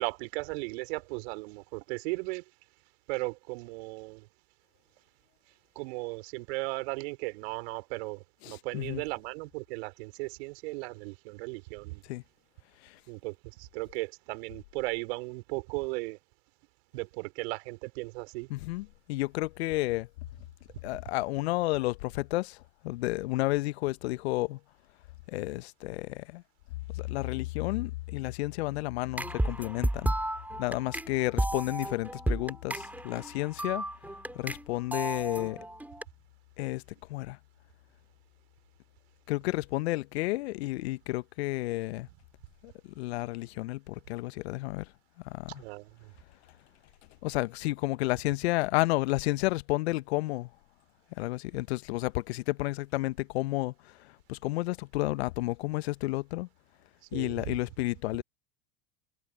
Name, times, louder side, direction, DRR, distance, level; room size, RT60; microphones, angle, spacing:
voice 1, 0.0-2.4 3.1-4.3 5.7-12.0 13.1-16.2 16.9-18.5 45.5-45.9 57.1-57.5, right 25 dB, 60° right, 3.2 m, -36 dB
voice 2, 8.4-9.0 12.0-12.2 12.8-13.0 18.5-20.1 20.8-24.6 25.3-26.4 26.9-30.1 30.6-33.8 34.3-35.6 36.6-36.8 37.1-37.4 39.3-42.1 42.6-44.9 45.2-45.6 47.2-50.5 51.2-56.5 57.1-58.2, left 20 dB, 60° left, 1.3 m, -31 dB
sound 1, 29.2-34.6 34.9-36.0, right 1 dB, 5° right, 4.9 m, -33 dB
figure-of-eight pair, 80°, 35 cm